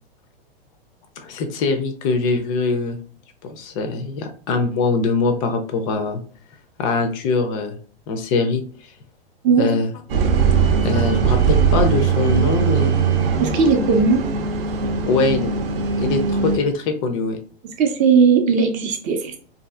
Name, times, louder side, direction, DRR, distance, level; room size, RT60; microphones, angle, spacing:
voice 1, 1.2-3.0 3.4-6.2 6.8-7.8 8.1-8.6 9.6-9.9 10.8-13.0 15.1-15.5 16.0-17.4, left 4 dB, 35° left, 6 dB, 0.4 m, -22 dB
sound 1, 10.1-16.6, right 6 dB, 70° right, 0.6 m, -20 dB
voice 2, 13.4-14.2 17.8-19.4, right 5 dB, 25° right, 4 dB, 0.4 m, -17 dB
2.6 x 2.6 x 2.3 m, 0.44 s
hypercardioid pair, 110°, 30 cm